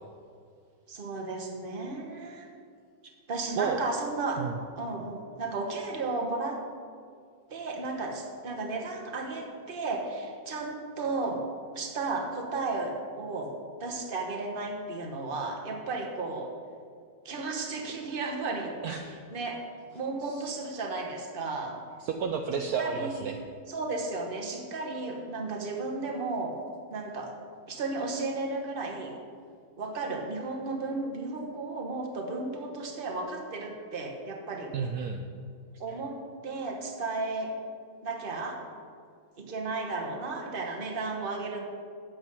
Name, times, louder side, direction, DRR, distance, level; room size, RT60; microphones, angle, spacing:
voice 1, 0.9-2.5 3.3-4.4 4.8-6.6 7.5-11.4 11.7-13.5 13.8-16.5 17.2-18.7 19.0-19.6 19.9-21.8 22.8-23.3 23.7-26.6 26.9-27.3 27.7-29.2 29.8-34.7 35.8-36.2 36.4-37.5 38.0-38.6 39.4-41.7, right 3 dB, 35° right, 1 dB, 1.1 m, -34 dB
voice 2, 22.0-23.4 34.7-35.2 35.9-36.0, right 6 dB, 75° right, 4 dB, 0.9 m, -31 dB
8.7 x 7.9 x 5.4 m, 2.2 s
omnidirectional pair, 2.1 m